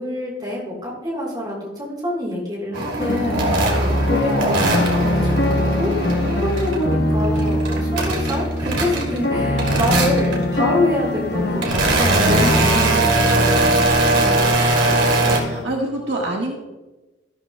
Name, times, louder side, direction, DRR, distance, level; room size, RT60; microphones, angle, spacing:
voice 1, 0.0-14.5, left 1 dB, 20° right, -3 dB, 4.0 m, -26 dB
sound 1, 2.7-6.8 7.2-9.3 9.6-10.4 11.1-15.4, right 2 dB, 85° right, 2.6 m, -21 dB
sound 2, 3.0-15.6, left 1 dB, 55° left, 1.1 m, -23 dB
voice 2, 4.3-4.8 12.1-12.5 15.1-16.6, right 1 dB, 70° right, -1 dB, 1.5 m, -27 dB
13.0 x 12.5 x 2.2 m, 1.1 s
head